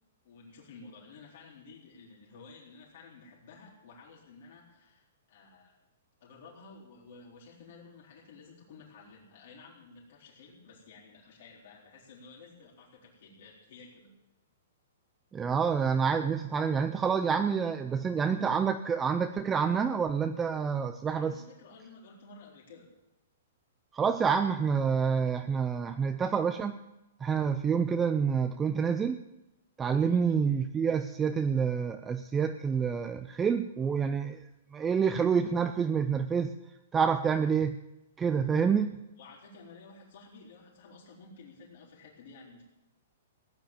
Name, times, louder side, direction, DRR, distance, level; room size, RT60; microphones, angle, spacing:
voice 1, 0.2-5.8 6.2-14.2 21.1-22.9 29.9-30.3 38.8-38.9 39.2-42.6, left 4 dB, 55° left, -3 dB, 4.0 m, -53 dB
voice 2, 15.3-21.3 23.9-26.8 27.2-29.2 29.8-34.4 34.7-36.5 36.9-37.8 38.2-38.9, right 6 dB, 10° right, 8 dB, 0.5 m, -28 dB
17.0 x 9.6 x 7.4 m, 0.94 s
hypercardioid pair, 160°, 0 cm